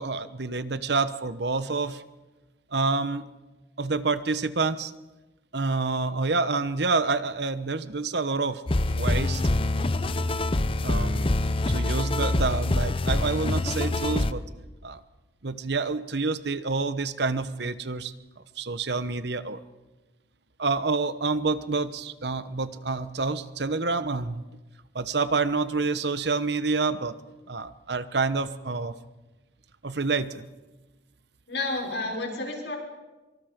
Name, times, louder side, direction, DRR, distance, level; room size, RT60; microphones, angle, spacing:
voice 1, 0.0-2.0 2.7-3.3 3.8-4.9 5.5-8.6 8.9-9.6 10.8-11.3 11.7-14.4 14.8-15.0 15.4-18.1 18.6-19.6 20.6-24.4 24.9-27.2 27.5-28.9 29.8-30.4, right 3 dB, 65° right, 13 dB, 1.1 m, -28 dB
sound 1, 8.7-14.3, left 2 dB, 30° left, 0.7 m, -25 dB
voice 2, 31.5-32.8, left 2 dB, 75° left, 1 dB, 5.6 m, -30 dB
25.0 x 24.5 x 5.2 m, 1.1 s
head